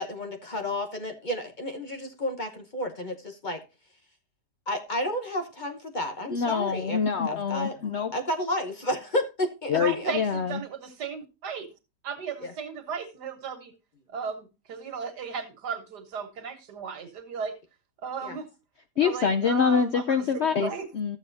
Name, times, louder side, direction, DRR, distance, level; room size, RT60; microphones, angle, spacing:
voice 1, 0.0-3.6 4.7-7.0 7.2-7.7 8.1-10.1 12.4-12.5 18.2-18.4, left 1 dB, 35° left, 5 dB, 1.0 m, -31 dB
voice 2, 6.3-8.1 9.7-10.6 19.0-21.2, left 6 dB, 65° left, 8 dB, 0.7 m, -25 dB
voice 3, 9.7-11.7 12.0-13.7 14.1-17.5 18.0-18.5 19.0-20.3 20.6-20.9, right 6 dB, 85° right, 6 dB, 1.9 m, -35 dB
13.5 x 7.4 x 2.6 m, 0.27 s
omnidirectional pair, 1.7 m